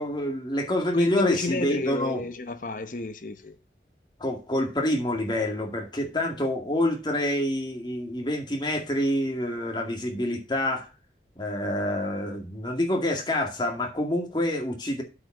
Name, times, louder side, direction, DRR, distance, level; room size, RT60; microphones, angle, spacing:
voice 1, 0.0-2.2 4.2-10.9 11.4-15.0, left 1 dB, 25° left, 2.0 m, -27 dB
voice 2, 0.9-3.6, left 3 dB, 45° left, 0.9 m, -30 dB
8.3 x 5.2 x 5.9 m
head